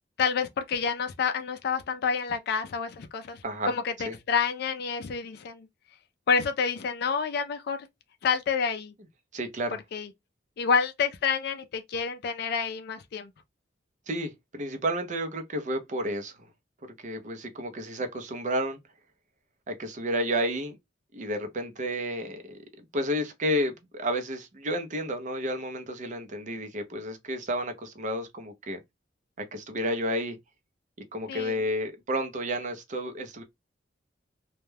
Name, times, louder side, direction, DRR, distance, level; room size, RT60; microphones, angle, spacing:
voice 1, 0.2-3.4 3.7-5.7 6.3-7.8 8.2-8.9 9.9-10.1 10.6-13.3 31.3-31.6, left 6 dB, 60° left, 0.3 m, -28 dB
voice 2, 9.3-9.8 14.1-16.4 17.0-18.8 19.7-20.8 21.1-28.8 29.5-30.4 31.1-33.4, equal, 45° right, 0.5 m, -31 dB
2.2 x 2.1 x 3.1 m
head